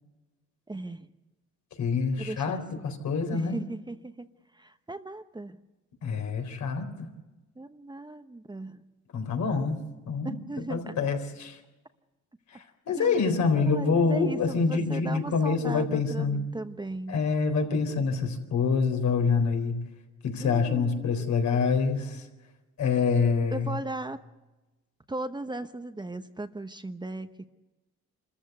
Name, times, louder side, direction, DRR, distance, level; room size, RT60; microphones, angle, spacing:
voice 1, 0.7-1.1 2.2-2.9 3.3-4.3 4.5-5.6 7.6-8.8 10.2-10.9 13.0-17.2 20.4-21.3 23.5-24.2 25.1-27.5, right 2 dB, 15° right, 9 dB, 1.0 m, -37 dB
voice 2, 1.8-2.6 2.8-3.6 6.0-7.1 9.1-9.8 10.1-10.4 10.7-11.6 12.9-16.4 17.1-19.8 20.2-22.2 22.8-23.7, left 5 dB, 70° left, 5 dB, 4.1 m, -26 dB
26.5 x 14.5 x 8.1 m, 1.1 s
cardioid pair, 90°, 30 cm